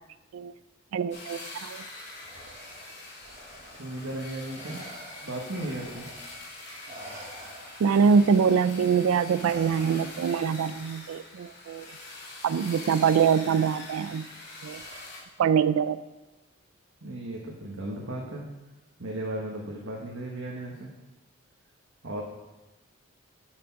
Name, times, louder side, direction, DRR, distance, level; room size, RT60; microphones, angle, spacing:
voice 1, 0.9-1.8 7.8-11.9 12.4-14.3 14.6-14.8 15.4-16.0, right 6 dB, 85° right, 15 dB, 0.3 m, -24 dB
sound 1, 1.1-15.2, left 2 dB, 55° left, 2.8 m, -44 dB
Respiratory sounds, 2.2-6.5 6.9-10.5 11.8-12.0 12.9-13.5 14.7-15.3, right 1 dB, 35° right, 1.1 m, -48 dB
voice 2, 3.7-4.8 5.2-6.1 17.0-18.4 19.0-20.9 22.0-22.2, right 1 dB, 70° right, -3 dB, 1.4 m, -35 dB
8.6 x 6.3 x 5.8 m, 1.1 s
head